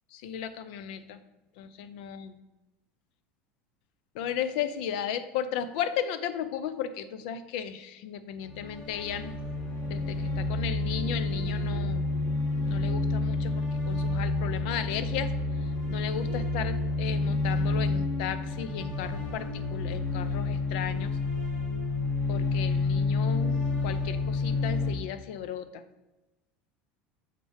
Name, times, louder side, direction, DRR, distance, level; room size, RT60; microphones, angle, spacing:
voice 1, 0.1-1.2 1.6-2.4 4.1-9.3 9.8-12.1 12.6-15.3 15.9-21.1 22.3-23.6 23.8-25.8, left 9 dB, 75° left, 13 dB, 0.5 m, -35 dB
sound 1, 8.4-24.9, left 3 dB, 30° left, 1.2 m, -29 dB
6.5 x 3.4 x 5.4 m, 1.0 s
cardioid pair, 165°, 5 cm